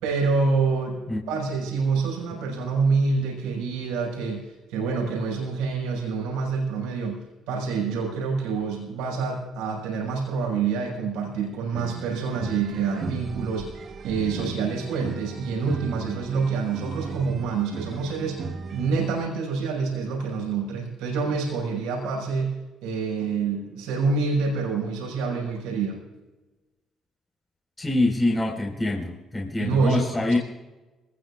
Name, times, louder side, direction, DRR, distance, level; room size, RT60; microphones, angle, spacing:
voice 1, 0.0-7.2 7.5-22.6 22.8-26.0 29.6-30.4, right 4 dB, 80° right, -1 dB, 5.6 m, -27 dB
sound 1, 11.7-19.3, right 4 dB, 55° right, 1.5 m, -36 dB
voice 2, 27.8-30.4, left 2 dB, 20° left, -1 dB, 4.6 m, -25 dB
25.5 x 19.5 x 2.4 m, 1.1 s
hypercardioid pair, 55°, 0 cm